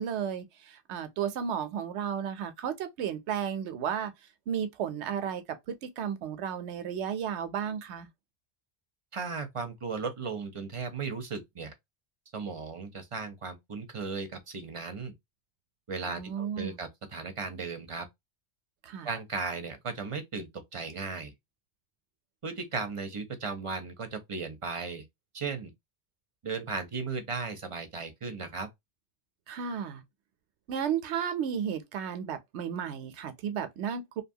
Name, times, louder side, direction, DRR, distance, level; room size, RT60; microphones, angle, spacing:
voice 1, 0.0-4.1 4.5-8.1 16.0-16.8 18.8-19.1 29.5-30.0 30.7-34.2, right 8 dB, 85° right, 0.9 m, -33 dB
voice 2, 9.1-11.7 12.3-15.2 15.9-18.1 19.0-21.3 22.4-25.0 25.3-25.7 26.4-28.7, right 4 dB, 35° right, 0.6 m, -36 dB
2.7 x 2.3 x 2.6 m
omnidirectional pair, 1.1 m